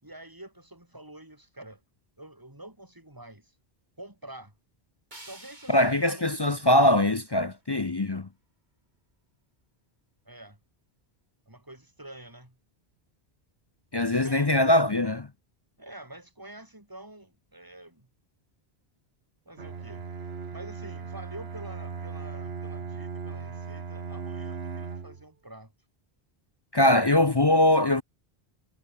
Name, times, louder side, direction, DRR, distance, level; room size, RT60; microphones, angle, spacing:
voice 1, 0.0-1.8 2.2-3.5 4.0-4.5 5.3-6.3 10.3-10.6 11.5-12.6 14.2-14.6 15.8-18.1 19.5-20.1 20.5-25.7 26.7-27.5, right 1 dB, 20° right, 3.9 m, -47 dB
sound 1, 5.1-8.1, right 1 dB, 45° right, 5.3 m, -53 dB
voice 2, 5.7-8.3 13.9-15.3 26.7-28.0, left 1 dB, 25° left, 0.7 m, -22 dB
Bowed string instrument, 19.6-25.3, right 5 dB, 75° right, 1.7 m, -37 dB
omnidirectional pair, 1.1 m